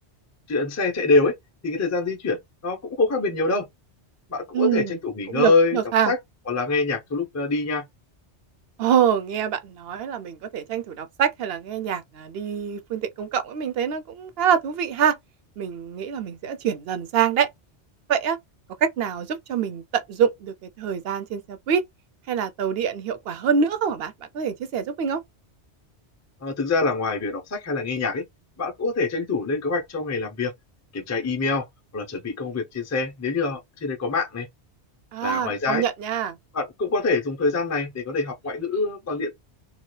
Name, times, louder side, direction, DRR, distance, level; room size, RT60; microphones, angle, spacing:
voice 1, 0.5-1.3 1.6-3.7 4.3-5.8 6.1-6.2 6.5-7.8 26.4-28.2 28.6-30.5 30.9-31.6 31.9-34.5 35.2-35.8 36.5-39.3, left 3 dB, 20° left, 0.4 m, -25 dB
voice 2, 4.5-4.9 5.3-6.1 8.8-15.2 15.6-17.5 18.1-18.4 18.8-21.8 22.3-25.2 35.1-36.4, right 8 dB, 65° right, 0.7 m, -25 dB
2.8 x 2.4 x 3.1 m
omnidirectional pair, 1.2 m